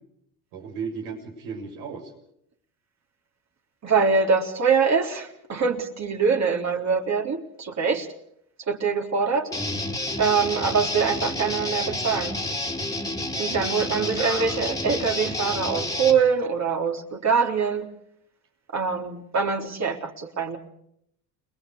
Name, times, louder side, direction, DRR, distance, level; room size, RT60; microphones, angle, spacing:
voice 1, 0.5-2.1 13.4-13.8, right 5 dB, 75° right, 2 dB, 6.9 m, -35 dB
voice 2, 3.8-8.1 8.7-9.5 10.2-12.3 13.4-17.9 18.7-20.6, right 5 dB, 35° right, 2 dB, 3.8 m, -24 dB
Guitar, 9.5-16.2, left 1 dB, 10° left, 3.1 m, -29 dB
30.0 x 21.0 x 5.0 m, 0.74 s
hypercardioid pair, 70°, 45 cm